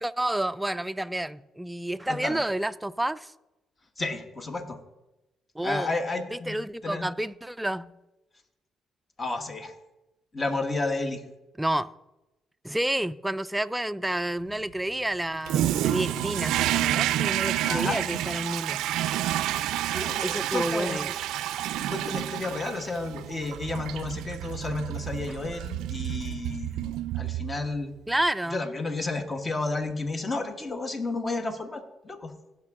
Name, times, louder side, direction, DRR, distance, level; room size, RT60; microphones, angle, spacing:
voice 1, 0.0-3.3 5.6-6.0 6.3-7.9 11.6-11.9 12.6-18.8 20.2-21.2 28.1-28.6, right 1 dB, 5° right, 0.3 m, -30 dB
voice 2, 2.1-2.4 4.0-4.8 5.6-7.1 9.2-9.7 10.3-11.2 17.6-18.0 19.9-21.0 21.9-27.9 28.5-32.3, left 3 dB, 30° left, 1.2 m, -32 dB
Toilet flush, 15.5-27.8, right 13 dB, 90° right, 0.3 m, -29 dB
16.0 x 5.9 x 3.6 m
cardioid pair, 90°, 0 cm